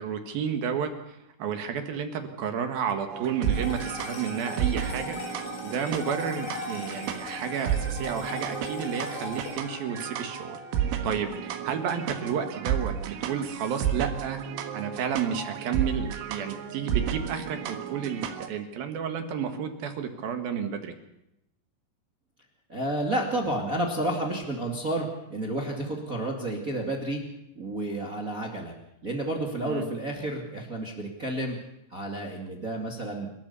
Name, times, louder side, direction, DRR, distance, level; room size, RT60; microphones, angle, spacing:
voice 1, 0.0-5.2 5.6-10.6 11.0-14.4 14.7-20.9 29.7-29.8, right 7 dB, 60° right, 6 dB, 2.9 m, -31 dB
sound 1, 3.1-18.5, right 9 dB, 80° right, 4.0 m, -32 dB
sound 2, 3.4-12.0, left 4 dB, 90° left, 6.4 m, -40 dB
voice 2, 22.7-27.2 27.5-28.7 29.0-31.6 31.9-33.3, right 1 dB, 35° right, 1 dB, 1.4 m, -30 dB
29.0 x 13.0 x 6.9 m, 0.85 s
omnidirectional pair, 5.6 m